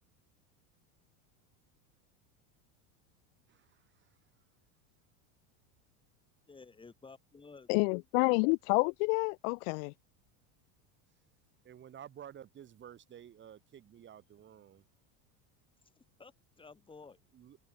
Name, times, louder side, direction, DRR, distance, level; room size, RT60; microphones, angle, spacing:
voice 1, 3.5-4.1 11.6-14.8 17.3-17.6, right 10 dB, 25° right, 2.7 m, -52 dB
voice 2, 6.5-7.7 16.0-17.2, left 4 dB, 10° left, 4.3 m, -54 dB
voice 3, 7.7-9.9, left 36 dB, 60° left, 1.2 m, -29 dB
supercardioid pair, 145°, 41 cm